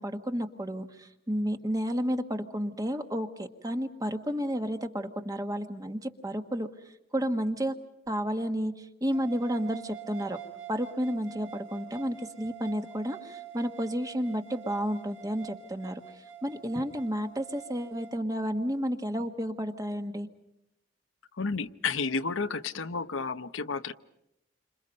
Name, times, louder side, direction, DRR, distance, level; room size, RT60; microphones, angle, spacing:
voice 1, 0.0-7.7 8.1-10.4 10.7-20.3, equal, 20° right, 7 dB, 1.4 m, -31 dB
sound 1, 9.1-18.2, right 8 dB, 80° right, 5.0 m, -46 dB
voice 2, 21.3-23.9, left 4 dB, 90° left, 10 dB, 0.9 m, -31 dB
29.5 x 26.5 x 5.4 m, 0.81 s
head